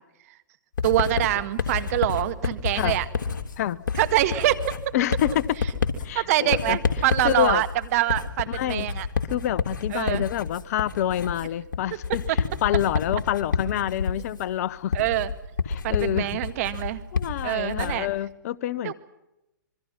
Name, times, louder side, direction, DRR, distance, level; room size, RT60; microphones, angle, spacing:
Writing, 0.8-18.1, left 5 dB, 70° left, 3.4 m, -29 dB
voice 1, 0.8-3.1 4.0-4.8 6.1-7.7 7.9-9.1 9.9-10.2 14.9-15.3 15.8-17.0 17.4-18.1 18.8-18.9, right 14 dB, 50° right, 2.1 m, -25 dB
voice 2, 4.9-5.5 6.0-6.8 7.2-7.6 8.5-8.9 9.3-12.2 12.6-15.0 15.7-16.4 17.1-18.9, left 11 dB, 50° left, 1.0 m, -27 dB
27.0 x 23.0 x 5.9 m
hypercardioid pair, 125°, 11 cm